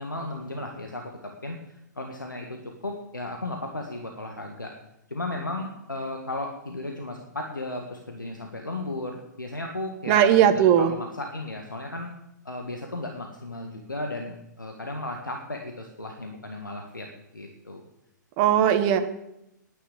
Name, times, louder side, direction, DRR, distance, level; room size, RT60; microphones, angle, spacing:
voice 1, 0.0-4.7 5.1-12.1 12.5-17.1 17.3-17.8, left 2 dB, 90° left, 2 dB, 1.8 m, -35 dB
voice 2, 10.1-10.9 18.4-19.1, right 10 dB, 35° right, 9 dB, 1.4 m, -18 dB
10.5 x 9.4 x 8.4 m, 0.85 s
figure-of-eight pair, 120°, 10 cm